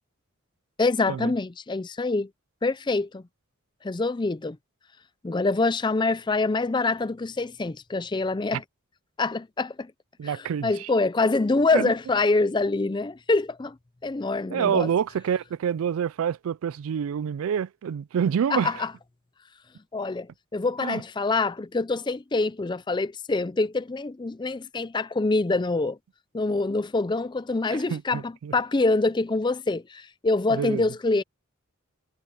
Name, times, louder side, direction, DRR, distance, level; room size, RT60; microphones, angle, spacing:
voice 1, 0.8-2.3 2.6-3.2 3.8-4.6 5.2-8.6 9.2-9.9 10.6-13.8 14.0-14.9 18.5-18.9 19.9-26.0 26.3-31.2, left 3 dB, 20° left, 0.4 m, -25 dB
voice 2, 10.2-10.9 11.7-11.9 14.5-18.8 20.8-21.0 27.7-28.5 30.5-30.8, right 8 dB, 80° right, 0.3 m, -27 dB
head